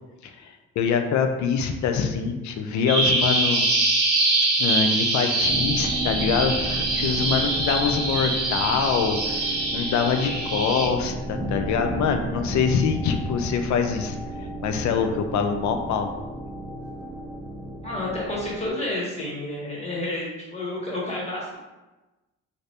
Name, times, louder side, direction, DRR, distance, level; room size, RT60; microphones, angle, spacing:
voice 1, 0.2-3.6 4.6-14.2 14.6-16.1, left 6 dB, 70° left, 5 dB, 0.5 m, -24 dB
Bird vocalization bird call bird song, 2.9-10.9, right 2 dB, 35° right, 1.0 m, -24 dB
sound 1, 5.4-18.7, right 1 dB, 15° right, 0.6 m, -34 dB
voice 2, 17.8-21.6, left 1 dB, 20° left, -5 dB, 1.3 m, -30 dB
2.7 x 2.6 x 3.3 m, 1.1 s
cardioid pair, 90°, 30 cm